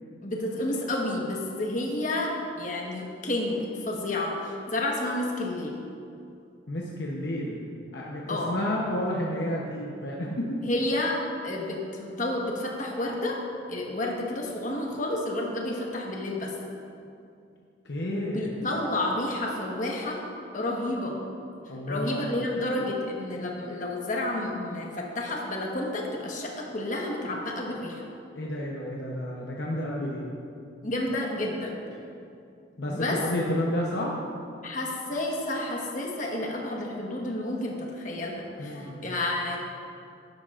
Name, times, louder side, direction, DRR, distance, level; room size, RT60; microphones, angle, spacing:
voice 1, 0.2-2.3 2.6-5.8 8.3-8.5 10.6-11.2 11.4-13.4 13.7-16.5 18.1-20.2 20.5-21.1 21.9-28.0 30.8-31.8 32.9-33.2 34.6-39.6, left 1 dB, 40° left, -1 dB, 1.3 m, -30 dB
voice 2, 6.7-7.6 7.9-10.6 17.8-18.6 21.7-22.3 28.4-30.3 32.8-34.2 38.6-39.1, left 1 dB, 60° left, -3 dB, 0.9 m, -31 dB
12.0 x 11.0 x 2.5 m, 2.5 s
head